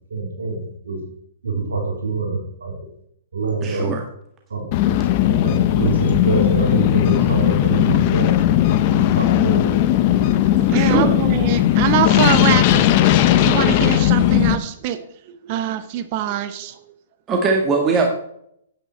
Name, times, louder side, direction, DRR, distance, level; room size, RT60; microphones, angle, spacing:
voice 1, 0.1-1.0 1.4-2.8 3.3-3.9 4.5-4.7 5.2-8.3 8.9-9.9, right 3 dB, 80° right, -1 dB, 3.7 m, -25 dB
voice 2, 3.6-4.0 10.7-11.1 17.3-18.1, right 4 dB, 25° right, 2 dB, 1.7 m, -20 dB
sound 1, 4.7-14.5, left 12 dB, 40° left, 0.8 m, -17 dB
voice 3, 10.5-16.8, right 10 dB, 45° right, 11 dB, 0.9 m, -24 dB
9.3 x 9.0 x 4.4 m, 0.71 s
hypercardioid pair, 125°, 0 cm